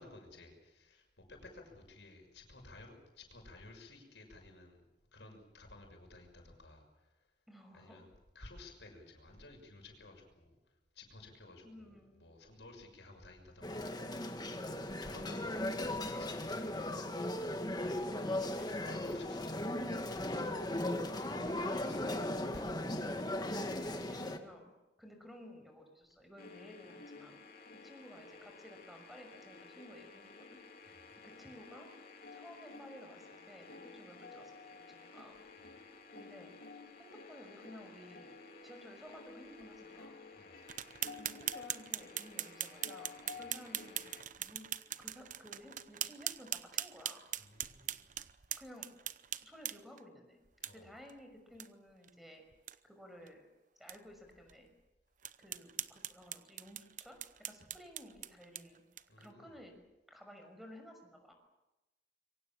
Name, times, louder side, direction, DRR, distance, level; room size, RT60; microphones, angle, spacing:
voice 1, 0.0-4.8 5.1-7.1 7.7-8.1 8.3-10.6 10.9-14.0 15.0-16.9 18.7-20.9 21.2-22.2 22.5-23.1 30.8-31.0 35.6-35.7 40.3-40.6 43.3-43.5 47.4-47.9 50.6-50.9 59.1-59.5, left 2 dB, 85° left, 2 dB, 6.3 m, -55 dB
voice 2, 7.5-8.0 11.6-12.2 17.7-18.0 18.6-18.7 23.9-24.7 25.0-27.4 27.8-30.6 31.2-31.9 32.3-35.4 35.8-36.5 37.0-38.4 38.6-40.2 41.2-44.7 45.0-47.2 48.6-48.9 49.4-50.4 50.7-52.4 52.8-53.4 53.8-54.7 55.4-57.2 57.5-58.8 59.2-59.8 60.1-61.3, equal, ahead, 4 dB, 5.9 m, -55 dB
sound 1, 13.6-24.4, left 1 dB, 25° left, 2.0 m, -37 dB
sound 2, 26.4-44.2, left 4 dB, 60° left, 3.5 m, -53 dB
sound 3, 40.7-50.0 50.6-50.7 51.1-51.2 51.6-51.7 52.0-52.1 52.5-52.8 53.3-53.4 53.9-54.0 54.5-54.6 55.2-59.3, right 11 dB, 45° right, 0.8 m, -41 dB
26.5 x 23.5 x 7.4 m, 1.0 s
head